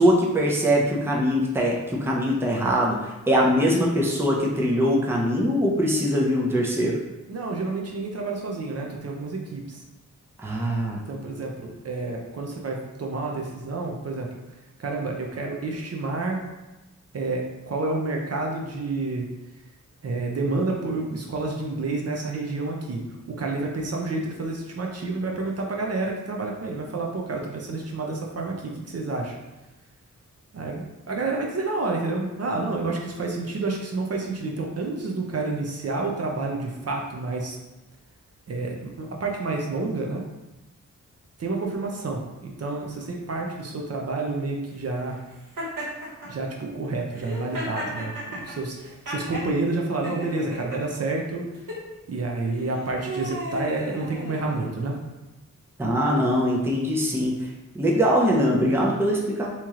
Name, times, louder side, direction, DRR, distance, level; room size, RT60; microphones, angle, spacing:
voice 1, 0.0-7.0 10.4-11.0 55.8-57.5 57.7-59.5, equal, 10° right, -2 dB, 0.6 m, -22 dB
voice 2, 7.3-9.8 11.1-14.4 14.8-16.5 17.1-19.3 20.0-29.4 30.5-37.6 38.5-40.2 41.4-45.2 46.2-51.5 52.1-55.0, right 3 dB, 50° right, 0 dB, 0.6 m, -29 dB
Laughter, 45.6-46.3 47.1-49.5 50.0-50.8 51.5-51.8 52.6-54.8, equal, 85° right, 1.2 m, -34 dB
3.0 x 2.9 x 3.6 m, 1.0 s
wide cardioid pair, 120°, 31 cm